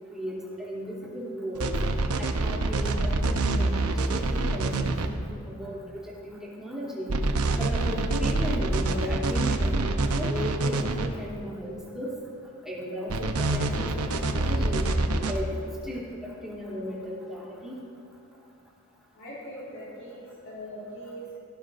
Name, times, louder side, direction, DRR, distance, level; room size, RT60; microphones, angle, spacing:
voice 1, 0.1-1.8 2.1-4.7 5.0-5.2 5.5-7.2 7.5-9.9 10.2-12.2 12.6-14.9 15.2-17.8, equal, ahead, -6 dB, 2.9 m, -35 dB
sound 1, 1.6-5.1 7.1-11.1 13.1-15.4, right 2 dB, 75° right, 0.9 m, -26 dB
voice 2, 19.1-21.4, equal, 60° left, -7 dB, 3.4 m, -41 dB
17.0 x 15.0 x 2.6 m, 2.6 s
head